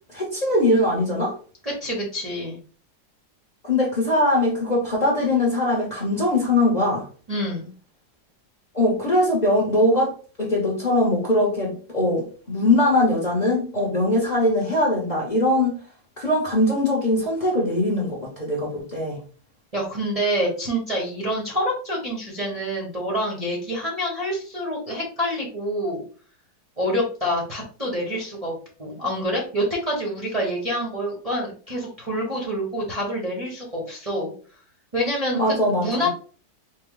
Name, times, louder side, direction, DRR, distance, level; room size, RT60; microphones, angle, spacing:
voice 1, 0.1-1.3 3.6-7.1 8.7-15.8 16.2-19.2 35.3-36.1, left 1 dB, 30° left, 0.8 m, -21 dB
voice 2, 1.8-2.6 7.3-7.7 19.7-26.0 26.8-34.3 34.9-36.1, equal, 30° right, 0.8 m, -27 dB
4.2 x 2.2 x 3.7 m
omnidirectional pair, 1.9 m